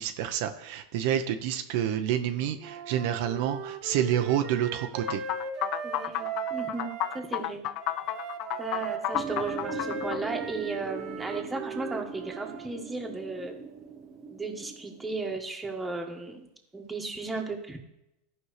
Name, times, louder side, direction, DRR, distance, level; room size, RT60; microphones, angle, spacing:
voice 1, 0.0-5.3, right 10 dB, 65° right, 6 dB, 0.7 m, -28 dB
Wind instrument woodwind instrument, 2.6-7.2 7.8-12.7, right 5 dB, 45° right, 1.2 m, -38 dB
sound 1, 5.1-10.2, left 14 dB, 50° left, 0.3 m, -32 dB
voice 2, 5.8-7.6 8.6-13.5 14.3-16.5 16.7-17.8, right 3 dB, 10° right, 1 dB, 1.5 m, -35 dB
sound 2, 9.1-15.3, right 6 dB, 25° right, 0.9 m, -41 dB
15.0 x 5.4 x 3.2 m, 0.86 s
supercardioid pair, 125°, 0 cm